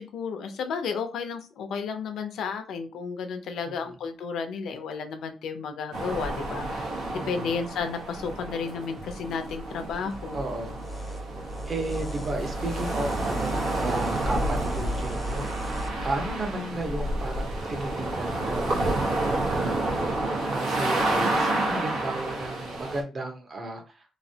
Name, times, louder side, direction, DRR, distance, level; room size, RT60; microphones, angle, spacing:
voice 1, 0.0-10.4, left 5 dB, 75° left, 7 dB, 0.6 m, -33 dB
sound 1, 5.9-23.0, right 2 dB, 85° right, 1.2 m, -30 dB
voice 2, 7.1-7.5 10.3-10.8 11.7-18.8 19.4-24.0, right 2 dB, 35° right, 3 dB, 0.9 m, -34 dB
sound 2, 10.1-15.9, right 1 dB, 10° left, 0.7 m, -36 dB
3.1 x 2.8 x 2.8 m, 0.34 s
cardioid pair, 145°, 0 cm